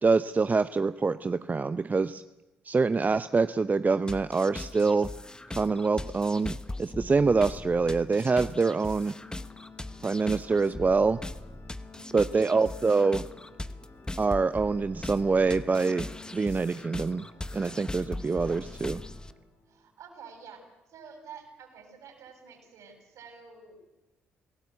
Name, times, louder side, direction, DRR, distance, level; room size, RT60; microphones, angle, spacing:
voice 1, 0.0-2.2 2.6-5.1 5.5-9.1 10.0-11.2 12.1-13.2 14.2-16.1 16.3-17.2 17.5-19.0, right 4 dB, 30° right, 13 dB, 0.7 m, -25 dB
sound 1, 4.1-19.3, left 2 dB, 15° left, 1.1 m, -40 dB
Organ, 9.0-19.9, left 4 dB, 50° left, 7.3 m, -52 dB
voice 2, 11.9-12.4 19.7-20.6 20.9-23.8, right 6 dB, 60° right, 4 dB, 7.1 m, -49 dB
27.0 x 18.0 x 8.2 m, 1.0 s
figure-of-eight pair, 45°, 6 cm